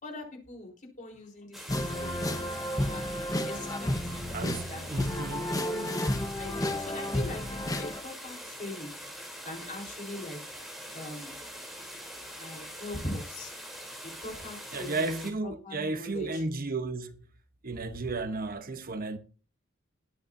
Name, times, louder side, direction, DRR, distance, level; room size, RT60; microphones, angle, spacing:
voice 1, 0.0-0.7 1.0-2.4 2.8-3.1 3.4-4.2 4.7-6.1 6.4-8.9 9.4-10.4 10.9-11.4 12.4-13.5 14.0-15.1 15.4-16.4, left 1 dB, 40° left, 4.2 m, -41 dB
sound 1, 1.5-15.3, equal, ahead, 3.4 m, -43 dB
sound 2, 1.7-8.0, left 1 dB, 20° left, 1.1 m, -32 dB
voice 2, 4.3-5.6 14.7-17.3 17.6-19.2, right 3 dB, 45° right, 1.0 m, -33 dB
21.0 x 8.4 x 2.7 m
head